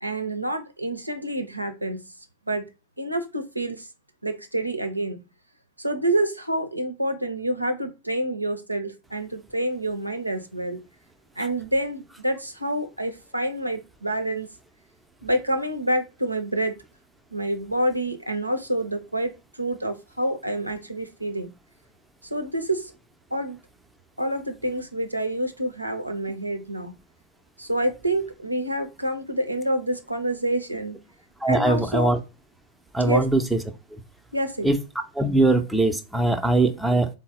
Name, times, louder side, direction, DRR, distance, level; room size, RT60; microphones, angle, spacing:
voice 1, 0.0-2.0 2.5-2.6 3.0-3.9 4.2-5.2 5.8-10.8 11.4-14.5 15.2-16.8 17.3-19.3 19.6-21.5 22.3-22.9 23.3-23.6 24.2-26.9 27.6-31.0 31.5-32.1 33.0-33.3 34.3-34.7, right 1 dB, 85° right, 0.5 m, -27 dB
voice 2, 31.4-32.2 32.9-33.6 34.6-34.8 35.2-37.1, right 2 dB, 5° right, 0.5 m, -21 dB
3.9 x 2.0 x 3.6 m
figure-of-eight pair, 90°, 0 cm